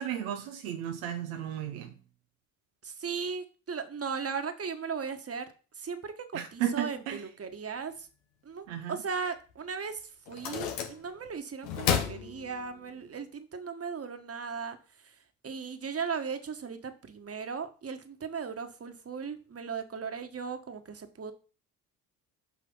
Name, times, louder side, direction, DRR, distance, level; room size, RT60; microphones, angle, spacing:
voice 1, 0.0-2.0 6.3-7.2 8.7-9.0, right 10 dB, 80° right, 1.0 m, -34 dB
voice 2, 2.8-5.5 5.7-8.1 8.4-21.3, right 6 dB, 35° right, 1.5 m, -37 dB
sound 1, 9.5-9.6 10.3-11.3 11.6-13.0, left 8 dB, 70° left, 1.5 m, -32 dB
6.0 x 5.6 x 5.6 m
hypercardioid pair, 50°, 42 cm